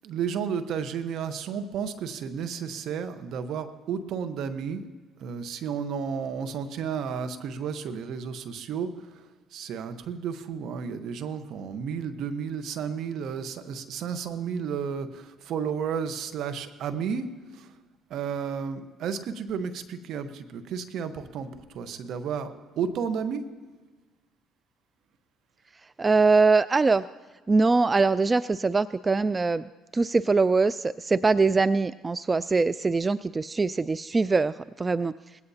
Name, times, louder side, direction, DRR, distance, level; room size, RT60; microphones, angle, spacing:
voice 1, 0.0-4.9 5.2-17.7 18.1-23.4, right 7 dB, 65° right, 9 dB, 1.1 m, -32 dB
voice 2, 26.0-27.0 27.5-29.6 29.9-35.1, right 3 dB, 25° right, 16 dB, 0.3 m, -22 dB
20.0 x 17.0 x 2.8 m, 1.3 s
supercardioid pair, 70°, 0 cm